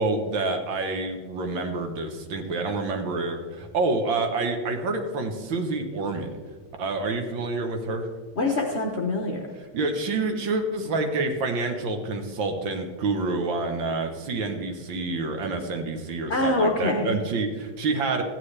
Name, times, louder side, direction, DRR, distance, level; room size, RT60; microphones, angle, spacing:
voice 1, 0.0-6.4 6.8-8.1 9.7-18.2, right 3 dB, 70° right, 5 dB, 1.8 m, -28 dB
voice 2, 8.4-9.5 16.3-17.2, left 2 dB, 50° left, 1 dB, 0.8 m, -24 dB
14.0 x 9.2 x 3.3 m, 1.5 s
omnidirectional pair, 2.2 m